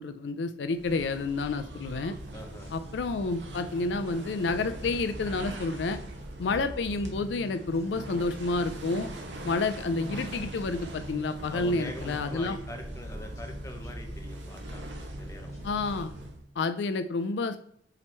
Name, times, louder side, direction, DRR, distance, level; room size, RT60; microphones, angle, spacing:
voice 1, 0.0-2.1 2.7-6.0 6.4-9.1 9.4-12.6 15.6-16.1 16.6-17.6, left 3 dB, 75° left, 10 dB, 0.4 m, -29 dB
sound 1, 0.7-16.5, right 1 dB, 80° right, 1.0 m, -41 dB
sound 2, 0.8-15.7, equal, 40° left, 2.1 m, -50 dB
voice 2, 2.3-2.7 11.5-14.9 15.2-15.5, left 1 dB, 15° left, 3 dB, 1.0 m, -43 dB
7.6 x 3.0 x 4.3 m, 0.70 s
head